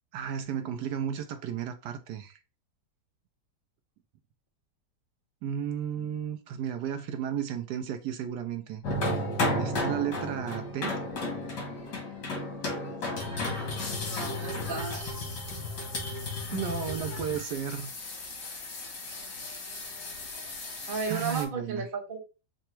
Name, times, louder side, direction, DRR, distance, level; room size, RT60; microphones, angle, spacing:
voice 1, 0.1-2.4 5.4-8.8 9.6-11.0 16.5-17.9 21.1-21.9, right 9 dB, 80° right, 1.2 m, -33 dB
sound 1, 8.8-21.4, left 2 dB, 90° left, 2.2 m, -34 dB
voice 2, 14.1-15.1 20.9-22.2, right 4 dB, 35° right, 1.1 m, -34 dB
4.9 x 2.3 x 4.4 m
omnidirectional pair, 1.8 m